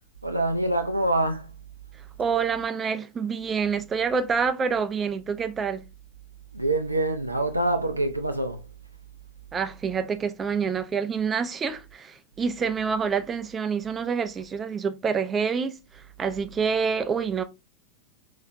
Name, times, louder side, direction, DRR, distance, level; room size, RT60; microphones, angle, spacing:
voice 1, 0.2-1.5 6.5-8.6, right 2 dB, 85° right, 0.4 m, -25 dB
voice 2, 2.2-5.8 9.5-17.4, right 6 dB, 20° right, 0.4 m, -27 dB
4.0 x 2.9 x 2.6 m
figure-of-eight pair, 90°, 0 cm